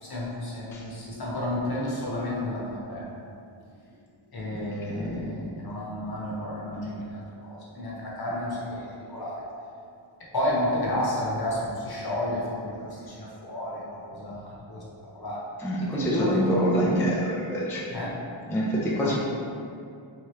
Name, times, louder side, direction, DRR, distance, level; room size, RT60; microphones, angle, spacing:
voice 1, 0.0-3.2 4.3-8.8 9.1-9.4 10.3-14.8 15.1-15.4 15.8-17.1 17.9-18.1 19.0-19.2, left 1 dB, 50° left, -5 dB, 0.9 m, -31 dB
voice 2, 15.6-17.8 18.5-19.2, equal, 5° left, -5 dB, 0.3 m, -26 dB
3.5 x 3.3 x 3.1 m, 2.4 s
wide cardioid pair, 130°, 49 cm